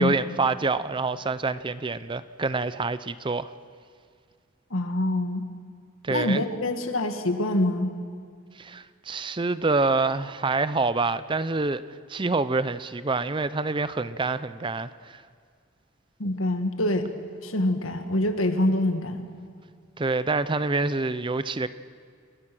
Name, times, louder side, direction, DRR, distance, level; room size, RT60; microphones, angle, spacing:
voice 1, 0.0-3.5 6.0-6.4 8.6-11.8 12.1-15.2 20.0-21.7, right 3 dB, 25° right, 14 dB, 0.5 m, -26 dB
voice 2, 4.7-5.5 6.1-7.9 16.2-17.1 17.4-19.3, left 1 dB, 80° left, 6 dB, 1.9 m, -25 dB
29.5 x 20.5 x 6.2 m, 2.1 s
head